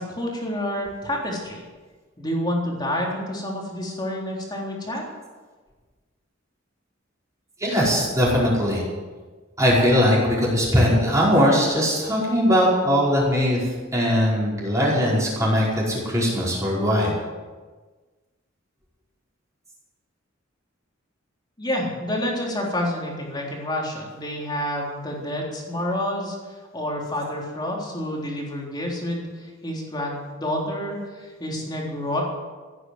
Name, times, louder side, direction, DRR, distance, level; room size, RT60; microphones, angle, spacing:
voice 1, 0.0-1.6 2.2-5.0 21.6-32.2, left 1 dB, 20° left, -2 dB, 3.7 m, -28 dB
voice 2, 7.6-8.8 9.6-13.6 13.9-17.1, equal, 15° right, -6 dB, 5.1 m, -20 dB
16.0 x 10.0 x 8.0 m, 1.3 s
head